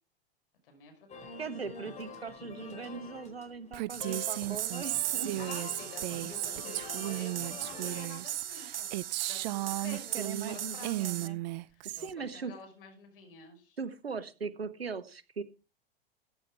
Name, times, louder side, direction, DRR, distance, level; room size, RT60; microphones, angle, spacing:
voice 1, 0.6-1.3 5.4-9.0 9.3-11.2 11.7-13.8, left 3 dB, 65° left, 4 dB, 5.5 m, -50 dB
sound 1, 1.1-8.3, left 3 dB, 25° left, 4.5 m, -46 dB
voice 2, 1.4-5.4 9.9-11.4 11.8-12.5 13.8-15.4, right 5 dB, 90° right, 13 dB, 1.3 m, -40 dB
Female speech woman speaking, 3.7-10.6 10.8-12.1, right 19 dB, 45° right, 0.5 m, -35 dB
sound 2, 3.9-11.3, right 10 dB, 70° right, 1.0 m, -40 dB
14.5 x 8.9 x 4.8 m, 0.32 s
figure-of-eight pair, 95°, 30 cm